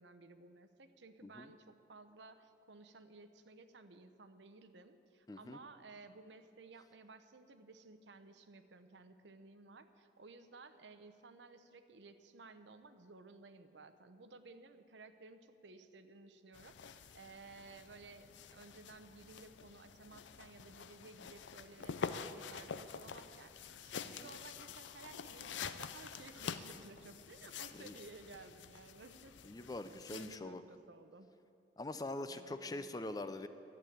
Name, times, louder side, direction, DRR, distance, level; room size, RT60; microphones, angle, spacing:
voice 1, 0.0-31.3 32.3-32.9, right 3 dB, 80° right, 9 dB, 0.8 m, -56 dB
voice 2, 5.3-5.6 24.1-24.3 27.7-27.9 29.4-30.6 31.8-33.5, left 2 dB, 20° left, 11 dB, 0.4 m, -44 dB
sound 1, 16.5-30.4, left 6 dB, 85° left, 0.5 m, -47 dB
11.5 x 8.3 x 9.2 m, 2.8 s
head